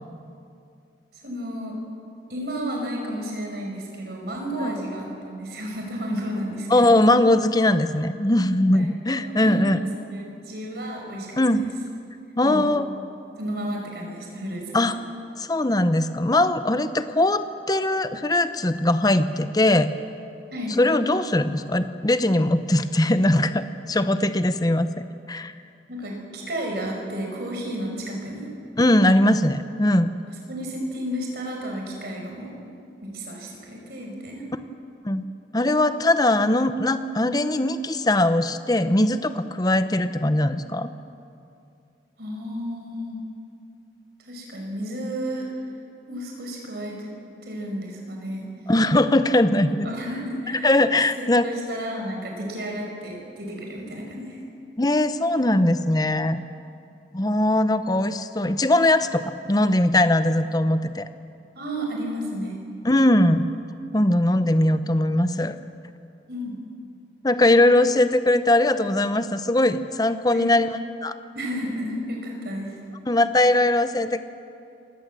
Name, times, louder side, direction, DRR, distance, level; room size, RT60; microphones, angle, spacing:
voice 1, 1.1-1.8 2.3-7.0 8.7-8.9 9.2-11.7 12.4-12.7 13.4-14.8 20.5-20.8 25.9-28.5 30.5-32.5 33.0-34.4 42.2-43.2 44.2-45.5 46.1-47.1 47.4-48.5 49.7-50.7 51.2-54.4 61.5-62.6 66.3-66.6 70.3-70.5 71.3-72.8, equal, 60° right, 0 dB, 5.6 m, -32 dB
voice 2, 6.7-9.8 11.4-11.6 12.4-12.9 14.7-14.9 15.4-19.9 20.8-24.9 25.3-25.5 28.8-30.1 35.0-35.3 35.5-40.9 48.7-49.9 50.6-51.5 54.8-56.4 57.1-61.1 62.8-63.5 63.9-65.6 67.2-70.7 71.0-71.2 73.1-74.2, left 1 dB, 20° left, 11 dB, 0.8 m, -20 dB
27.0 x 18.0 x 7.6 m, 2.5 s
head